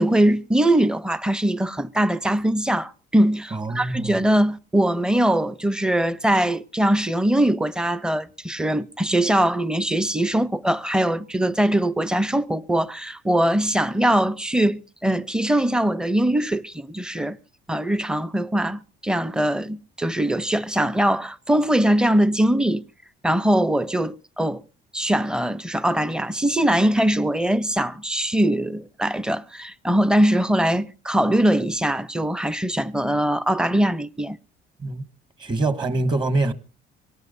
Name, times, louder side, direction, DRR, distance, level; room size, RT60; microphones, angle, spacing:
voice 1, 0.0-17.4 17.7-22.8 23.2-24.6 24.9-34.4, right 1 dB, 5° right, 0.7 m, -22 dB
voice 2, 3.5-4.2 34.8-35.0 35.4-36.5, right 2 dB, 30° right, 1.7 m, -24 dB
24.0 x 18.0 x 2.6 m
cardioid pair, 110°, 17 cm